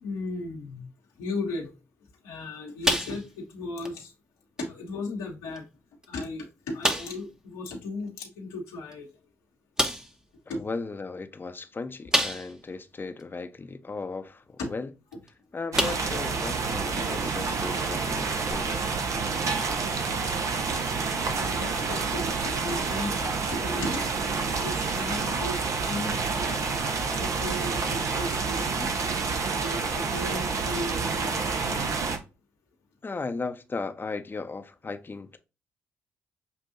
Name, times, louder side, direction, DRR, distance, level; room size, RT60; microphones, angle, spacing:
voice 1, 0.0-0.8 1.2-1.7 2.2-4.1 4.6-5.6 6.1-9.1 10.5-10.6 14.6-14.7 17.0-17.1 21.4-24.0 24.5-28.9 29.6-31.8, left 2 dB, 85° left, 1.4 m, -36 dB
sound 1, 2.8-3.5 3.8-4.0 4.6-4.7 5.5-5.6 6.0-6.1 6.8-7.3 8.9-9.0 9.8-10.2 12.1-12.7 13.2-13.3 15.1-15.3 15.7-16.3 16.7-16.8 18.5-18.6, equal, 10° right, 1.0 m, -28 dB
voice 2, 10.5-14.9 15.5-19.0 33.0-35.4, left 3 dB, 35° left, 0.8 m, -36 dB
sound 2, 15.7-32.2, right 4 dB, 60° right, 1.0 m, -28 dB
7.1 x 2.7 x 2.6 m
hypercardioid pair, 45°, 6 cm